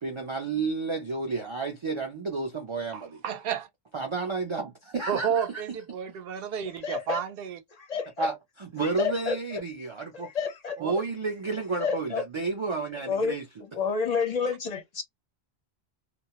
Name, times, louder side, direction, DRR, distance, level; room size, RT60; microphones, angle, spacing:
voice 1, 0.0-3.2 3.9-5.5 8.2-10.3 10.8-13.5, right 4 dB, 55° right, 0.3 m, -31 dB
voice 2, 2.9-3.7 5.1-7.6 10.8-10.9 14.5-14.6, right 8 dB, 70° right, 0.7 m, -31 dB
voice 3, 6.8-7.2 7.9-8.3 9.0-9.4 10.1-10.8 11.8-12.2 13.1-13.4 13.7-15.0, left 5 dB, 50° left, 0.5 m, -29 dB
2.3 x 2.0 x 2.7 m
omnidirectional pair, 1.0 m